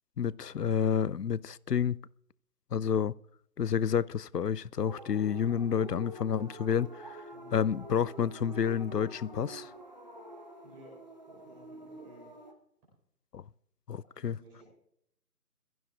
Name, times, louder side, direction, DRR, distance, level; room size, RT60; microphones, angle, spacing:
voice 1, 0.2-2.0 2.7-3.1 3.6-7.2 7.5-9.7 13.3-13.4 13.9-14.4, left 8 dB, 75° left, 0.6 m, -29 dB
sound 1, 4.8-12.5, right 1 dB, 25° right, 1.1 m, -47 dB
voice 2, 10.6-11.0 11.3-12.3 14.1-14.6, right 1 dB, 5° right, 4.4 m, -55 dB
22.0 x 15.0 x 2.4 m
figure-of-eight pair, 160°, 48 cm